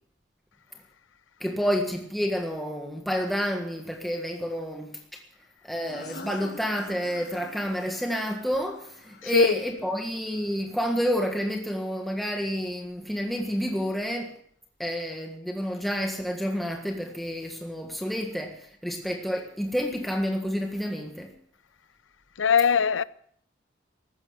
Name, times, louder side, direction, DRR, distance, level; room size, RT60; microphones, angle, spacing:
voice 1, 1.4-5.2 5.6-14.4 14.8-21.4, equal, ahead, 1.5 m, -29 dB
sound 1, 5.8-11.2, left 2 dB, 55° left, 1.7 m, -47 dB
voice 2, 9.2-9.5 22.4-23.0, left 6 dB, 80° left, 0.6 m, -20 dB
14.5 x 12.5 x 6.5 m
head